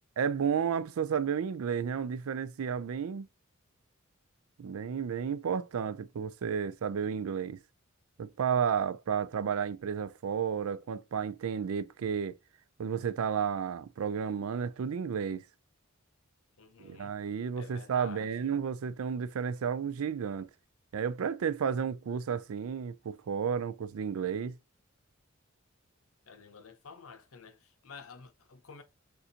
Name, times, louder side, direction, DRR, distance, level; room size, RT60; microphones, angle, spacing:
voice 1, 0.2-3.3 4.6-7.6 8.2-12.4 12.8-15.4 16.8-20.5 20.9-24.6, right 7 dB, 80° right, 0.4 m, -32 dB
voice 2, 16.6-17.1 17.6-18.5 26.3-28.8, left 5 dB, 70° left, 0.7 m, -50 dB
6.7 x 2.6 x 2.8 m
head